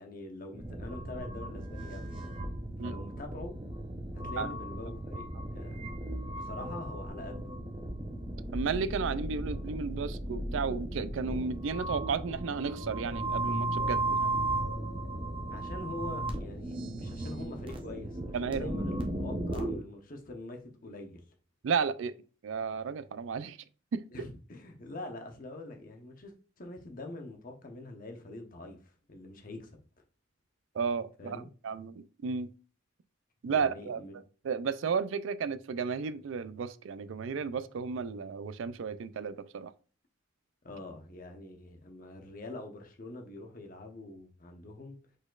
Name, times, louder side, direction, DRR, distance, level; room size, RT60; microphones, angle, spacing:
voice 1, 0.0-2.3 2.8-3.5 4.1-5.3 5.5-5.8 6.2-7.5 15.5-21.2 24.1-29.7 31.2-31.5 33.5-34.1 40.6-45.0, left 2 dB, 45° left, 0.9 m, -44 dB
sound 1, 0.5-19.8, right 1 dB, 25° right, 0.7 m, -36 dB
voice 2, 8.5-14.4 18.3-18.7 21.6-22.1 22.4-23.6 23.9-24.0 30.7-32.5 33.4-34.0 34.4-39.7, right 5 dB, 70° right, 0.4 m, -33 dB
5.0 x 4.1 x 2.4 m
head